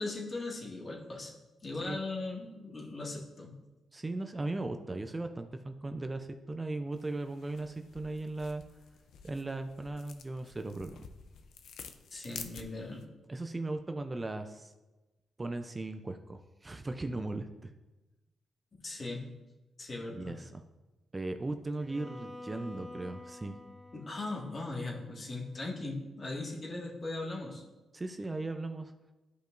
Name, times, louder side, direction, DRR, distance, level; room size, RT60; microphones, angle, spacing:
voice 1, 0.0-1.3 1.6-3.6 12.1-13.1 18.8-19.3 19.8-20.4 23.9-27.6, left 2 dB, 45° left, -2 dB, 1.8 m, -39 dB
voice 2, 3.9-8.6 9.2-11.0 13.3-14.7 15.4-17.7 20.1-20.6 21.1-23.6 27.9-28.9, right 2 dB, 25° right, 7 dB, 0.5 m, -37 dB
sound 1, 6.9-13.0, left 6 dB, 75° left, 0.5 m, -50 dB
Bowed string instrument, 21.8-25.8, left 1 dB, 10° right, 1.2 m, -49 dB
11.5 x 5.2 x 2.6 m, 1.1 s
supercardioid pair, 60°, 0 cm